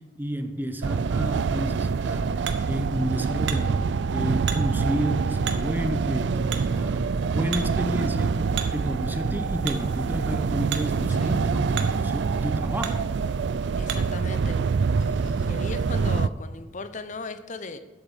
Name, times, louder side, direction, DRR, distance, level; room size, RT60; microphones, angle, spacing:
voice 1, 0.2-13.1, equal, 10° right, 0.8 m, -31 dB
sound 1, 0.8-16.3, right 5 dB, 65° right, 0.4 m, -26 dB
Hammer, 1.6-14.3, right 8 dB, 90° right, 1.2 m, -40 dB
voice 2, 13.7-14.6 15.0-17.8, left 3 dB, 40° left, 0.7 m, -38 dB
10.5 x 8.0 x 7.2 m
head